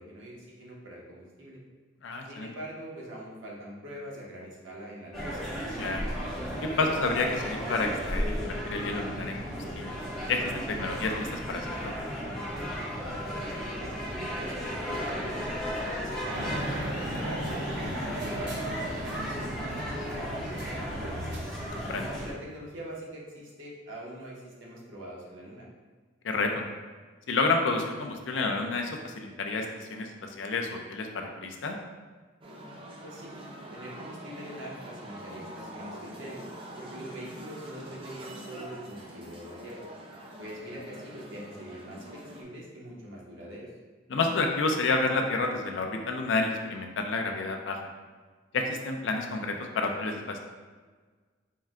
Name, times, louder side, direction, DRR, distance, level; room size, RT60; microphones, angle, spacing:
voice 1, 0.0-1.6 2.3-5.3 13.4-15.5 15.8-21.2 22.1-25.7 33.0-33.3 33.7-36.5 36.8-39.8 40.4-43.7, right 1 dB, 80° right, -4 dB, 1.0 m, -43 dB
voice 2, 2.0-2.5 5.8-6.1 6.8-10.0 10.3-11.9 18.1-18.2 21.7-22.1 26.2-26.6 27.3-31.8 44.1-47.8 48.5-50.4, left 3 dB, 70° left, 3 dB, 0.5 m, -30 dB
sound 1, 5.1-22.3, equal, ahead, 0.9 m, -35 dB
sound 2, 16.3-21.4, right 1 dB, 60° right, 0.7 m, -37 dB
sound 3, 32.4-42.4, right 1 dB, 30° right, 0.5 m, -44 dB
4.5 x 2.2 x 3.6 m, 1.5 s
head